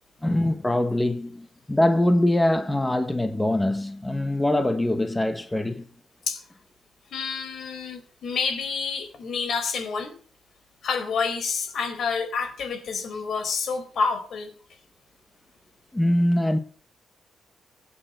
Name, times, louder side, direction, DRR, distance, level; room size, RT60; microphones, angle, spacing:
voice 1, 0.2-5.9 15.9-16.6, left 1 dB, 10° left, 1.4 m, -23 dB
voice 2, 7.1-10.1 10.8-14.5, left 5 dB, 65° left, 4.6 m, -28 dB
25.0 x 9.2 x 6.1 m
wide cardioid pair, 130°, 0 cm